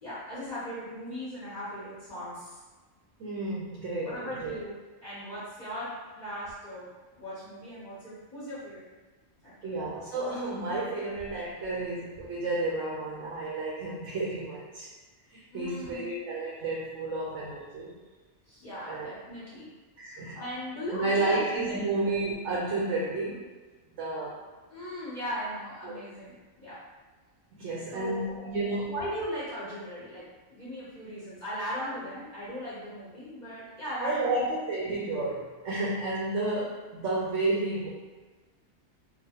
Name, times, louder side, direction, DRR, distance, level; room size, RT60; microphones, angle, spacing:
voice 1, 0.0-2.6 4.0-4.7 5.0-8.8 9.4-9.5 15.5-16.2 18.5-19.7 20.3-21.4 21.7-22.2 24.7-26.8 27.9-28.4 28.8-34.4, equal, 40° left, -10 dB, 0.9 m, -38 dB
voice 2, 3.2-4.6 9.6-14.9 15.3-17.9 18.9-19.1 20.0-20.4 20.9-23.5 24.0-24.4 25.8-26.0 27.5-29.0 34.0-37.9, right 2 dB, 90° right, -6 dB, 0.9 m, -31 dB
2.9 x 2.1 x 2.8 m, 1.3 s
omnidirectional pair, 1.2 m